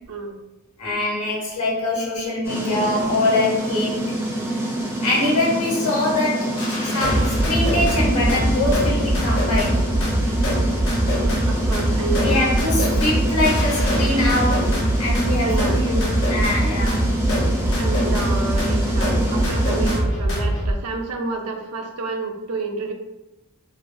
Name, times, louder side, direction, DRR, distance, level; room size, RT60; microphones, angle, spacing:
voice 1, 0.1-0.4 9.3-9.4 11.5-12.6 15.4-15.8 17.8-22.9, right 3 dB, 75° right, 3 dB, 0.4 m, -30 dB
voice 2, 0.8-4.2 5.0-10.1 12.2-16.0 16.3-17.0, left 2 dB, 75° left, -4 dB, 1.2 m, -23 dB
sound 1, 2.4-20.0, right 1 dB, 10° right, 0.4 m, -26 dB
sound 2, 6.6-20.7, right 1 dB, 60° left, 0.8 m, -22 dB
3.1 x 2.2 x 2.6 m, 1.0 s
head